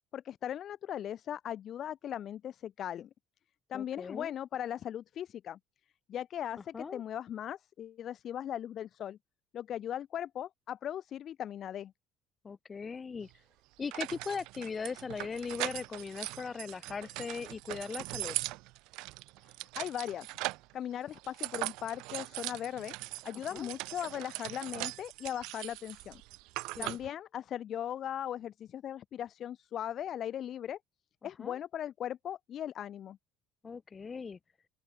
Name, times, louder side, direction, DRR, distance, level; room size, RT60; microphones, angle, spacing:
voice 1, 0.1-3.1 3.7-5.6 6.1-9.2 9.5-11.9 19.8-20.3 20.7-22.9 23.2-26.2 26.8-30.8 31.2-33.2, left 10 dB, 35° left, 0.3 m, -38 dB
voice 2, 3.7-4.3 6.6-7.0 12.4-13.3 13.8-18.4 23.3-23.7 26.8-27.1 31.2-31.6 33.6-34.4, left 5 dB, 20° left, 1.1 m, -39 dB
sound 1, 13.2-13.3 13.9-20.7 21.1-27.1, right 23 dB, 70° right, 1.2 m, -40 dB
open air
cardioid pair, 160°, 0 cm